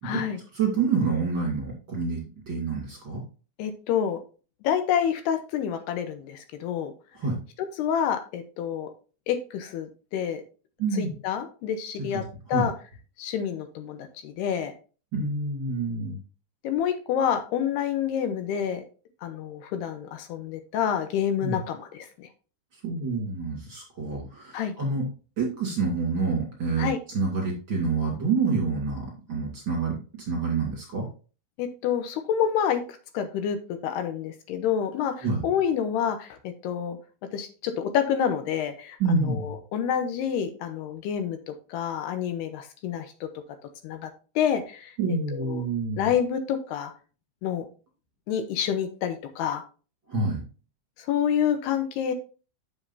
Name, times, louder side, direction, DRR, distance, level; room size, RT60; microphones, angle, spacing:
voice 1, 0.0-0.4 3.6-4.2 4.6-6.9 7.8-8.9 9.3-10.4 10.9-12.2 12.5-12.7 13.2-14.7 16.6-18.8 19.2-22.3 24.5-24.7 26.8-27.0 31.6-32.8 33.1-33.6 33.8-37.0 37.3-43.3 43.8-44.1 44.4-45.0 45.3-45.7 46.0-46.9 47.4-47.7 48.3-49.6 51.0-52.1, left 8 dB, 80° left, 8 dB, 2.9 m, -28 dB
voice 2, 0.5-2.2 2.5-3.2 7.1-7.4 10.8-11.1 12.1-12.2 12.5-12.6 15.1-16.2 21.4-21.6 22.8-25.0 25.4-26.9 27.1-31.0 35.2-35.5 39.0-39.6 45.0-46.1 50.1-50.4, right 4 dB, 30° right, -3 dB, 2.9 m, -27 dB
8.6 x 7.3 x 2.7 m, 0.35 s
omnidirectional pair, 4.8 m